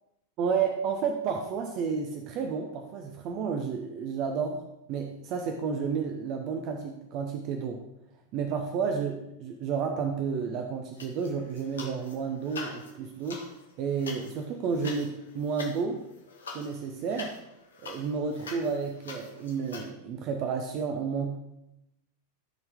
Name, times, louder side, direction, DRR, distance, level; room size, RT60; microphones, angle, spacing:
voice 1, 0.4-4.6 4.9-7.8 8.3-13.5 13.8-16.1 16.5-17.3 17.8-21.4, right 6 dB, 40° right, 4 dB, 0.8 m, -31 dB
sound 1, 11.0-12.2 12.4-19.9, left 4 dB, 70° left, 1.3 m, -44 dB
13.0 x 4.4 x 3.6 m, 0.86 s
figure-of-eight pair, 90°, 0 cm